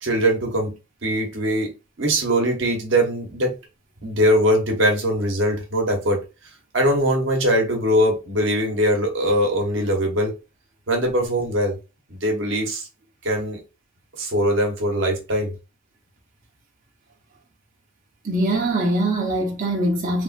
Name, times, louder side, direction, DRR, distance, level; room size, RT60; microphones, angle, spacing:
voice 1, 0.0-1.7 2.0-3.5 4.0-6.2 6.7-10.3 10.9-11.8 12.1-12.9 13.2-13.6 14.2-15.5, equal, 65° right, 1.1 m, -21 dB
voice 2, 18.2-20.2, right 1 dB, 40° right, 0.8 m, -22 dB
3.4 x 2.4 x 2.5 m
head